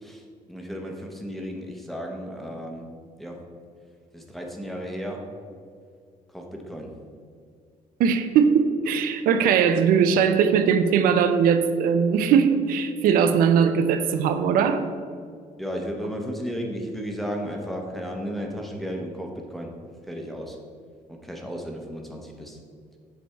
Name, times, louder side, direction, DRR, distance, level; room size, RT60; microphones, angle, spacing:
voice 1, 0.0-2.9 3.2-3.4 4.1-5.3 6.3-6.9 15.6-19.7 20.1-20.6 21.1-22.6, equal, ahead, 0 dB, 0.7 m, -34 dB
voice 2, 8.0-14.8, right 7 dB, 80° right, 9 dB, 0.5 m, -20 dB
7.8 x 3.3 x 5.6 m, 2.1 s
cardioid pair, 170°, 14 cm